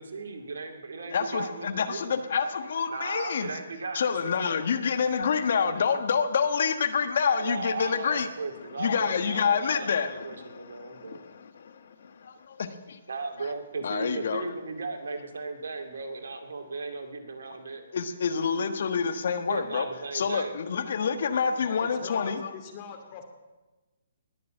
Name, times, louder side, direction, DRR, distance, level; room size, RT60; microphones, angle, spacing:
voice 1, 0.0-2.2 2.9-4.6 7.4-11.2 13.1-17.8 19.5-20.6, right 3 dB, 75° right, 5 dB, 2.4 m, -36 dB
voice 2, 1.1-3.6 3.9-8.3 8.8-11.7 12.2-13.0 13.8-14.4 17.9-19.9 20.1-22.5, left 6 dB, 60° left, 9 dB, 1.3 m, -27 dB
voice 3, 21.6-23.2, left 6 dB, 35° left, 5 dB, 2.6 m, -43 dB
20.0 x 6.9 x 8.9 m, 1.2 s
hypercardioid pair, 145°, 0 cm